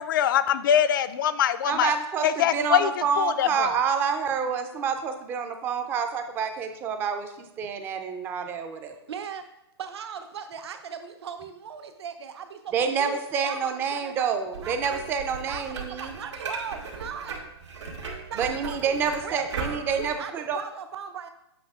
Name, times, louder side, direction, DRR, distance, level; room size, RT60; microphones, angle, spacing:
voice 1, 0.0-1.9 2.2-3.7, left 10 dB, 50° left, 13 dB, 0.4 m, -23 dB
voice 2, 1.7-8.9 12.7-16.1 18.4-20.6, right 6 dB, 15° right, 7 dB, 0.5 m, -28 dB
voice 3, 9.1-9.4 9.8-17.5 18.3-21.3, right 7 dB, 65° right, 8 dB, 0.9 m, -39 dB
sound 1, 14.5-20.1, right 4 dB, 90° right, 1.8 m, -37 dB
8.0 x 5.7 x 3.5 m, 0.84 s
hypercardioid pair, 155°, 14 cm